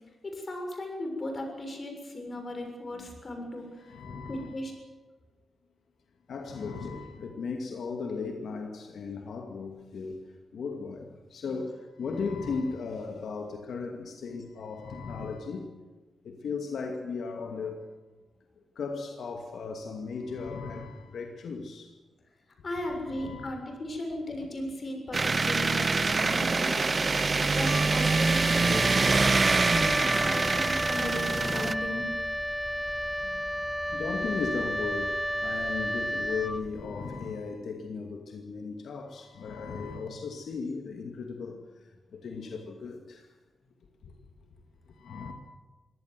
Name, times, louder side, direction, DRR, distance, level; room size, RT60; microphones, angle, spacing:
voice 1, 0.2-3.9 4.3-4.7 22.6-26.8 27.4-28.9 29.7-32.0 35.8-35.9 36.6-36.8 37.2-37.3, left 1 dB, 40° left, 3 dB, 6.8 m, -36 dB
voice 2, 3.8-4.6 6.3-10.2 10.5-15.7 16.2-17.8 18.8-21.9 23.0-23.6 28.4-29.4 31.2-31.8 33.2-33.4 33.9-43.3 44.9-45.3, left 4 dB, 75° left, 3 dB, 2.4 m, -37 dB
sound 1, 25.1-31.7, right 4 dB, 35° right, 0.7 m, -25 dB
Wind instrument woodwind instrument, 27.6-37.1, equal, ahead, 0.8 m, -32 dB
23.5 x 18.0 x 7.7 m, 1.2 s
wide cardioid pair, 115°, 0 cm